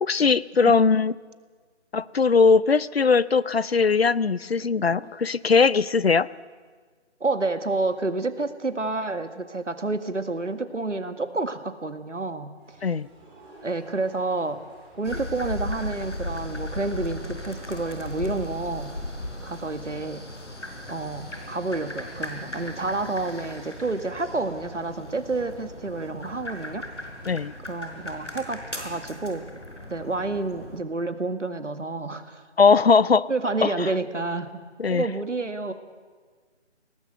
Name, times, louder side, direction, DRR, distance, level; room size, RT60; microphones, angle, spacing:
voice 1, 0.0-1.1 1.9-6.3 12.8-13.1 27.3-27.5 32.6-33.3 33.6-33.7 34.8-35.0, left 5 dB, 60° left, 20 dB, 0.6 m, -20 dB
voice 2, 7.2-12.5 12.8-12.9 13.6-14.6 15.0-18.9 19.4-20.2 20.9-26.9 27.6-29.4 29.9-32.4 33.3-34.6 34.9-35.7, right 3 dB, 90° right, 10 dB, 2.0 m, -29 dB
sound 1, 12.5-29.1, right 1 dB, 10° right, 6.5 m, -53 dB
sound 2, 15.0-30.8, left 1 dB, 85° left, 4.8 m, -37 dB
22.0 x 18.0 x 7.9 m, 1.5 s
figure-of-eight pair, 165°, 35 cm